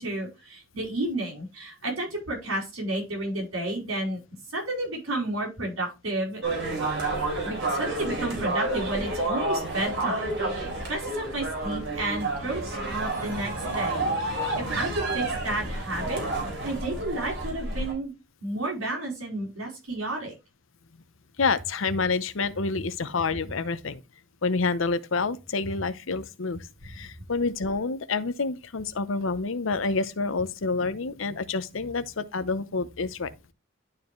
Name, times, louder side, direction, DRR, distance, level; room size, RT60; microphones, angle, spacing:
voice 1, 0.0-4.2 4.5-6.4 7.4-18.1 18.4-20.3, right 1 dB, 80° right, 4.8 m, -32 dB
sound 1, 6.4-17.9, right 2 dB, 60° right, 3.6 m, -30 dB
voice 2, 21.4-24.0 24.4-33.3, left 4 dB, 65° left, 0.7 m, -28 dB
11.5 x 4.7 x 3.1 m
head